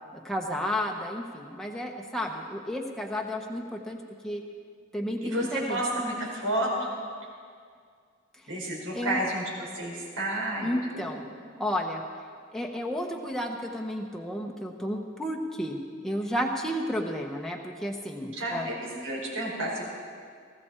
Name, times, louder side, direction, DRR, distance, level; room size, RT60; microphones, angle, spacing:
voice 1, 0.1-4.0 4.2-4.4 4.9-5.8 8.9-9.2 10.6-11.2 11.6-12.0 12.5-18.7, equal, ahead, 0 dB, 1.0 m, -32 dB
voice 2, 5.2-7.0 8.5-11.2 18.3-19.8, right 1 dB, 90° right, -4 dB, 5.0 m, -31 dB
19.0 x 15.0 x 4.4 m, 2.1 s
head